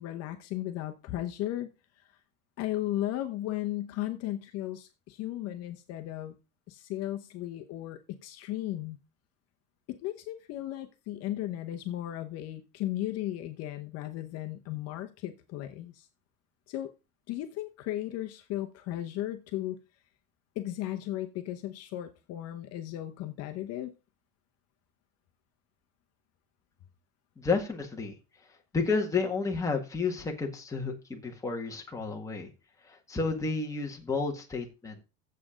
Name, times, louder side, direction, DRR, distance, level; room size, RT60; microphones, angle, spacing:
voice 1, 0.0-1.7 2.6-6.3 6.7-9.0 9.9-16.1 16.7-16.9 17.3-19.8 20.6-23.9, left 14 dB, 45° left, 0.9 m, -35 dB
voice 2, 27.4-28.1 28.7-32.5 32.9-35.0, left 4 dB, 10° left, 1.7 m, -31 dB
9.5 x 7.6 x 5.0 m
cardioid pair, 165°, 34 cm